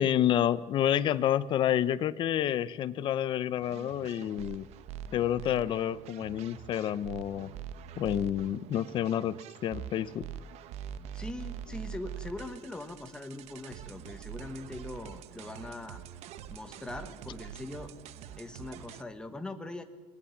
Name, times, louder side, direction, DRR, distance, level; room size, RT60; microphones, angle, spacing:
voice 1, 0.0-4.7 5.1-7.5 8.0-10.3, left 11 dB, 35° left, 17 dB, 0.7 m, -29 dB
sound 1, 3.6-19.0, right 9 dB, 45° right, 0.9 m, -44 dB
voice 2, 11.1-16.0 16.5-17.9 18.4-19.8, left 2 dB, 5° left, 6 dB, 1.4 m, -41 dB
25.0 x 20.0 x 7.2 m, 1.2 s
cardioid pair, 175°, 15 cm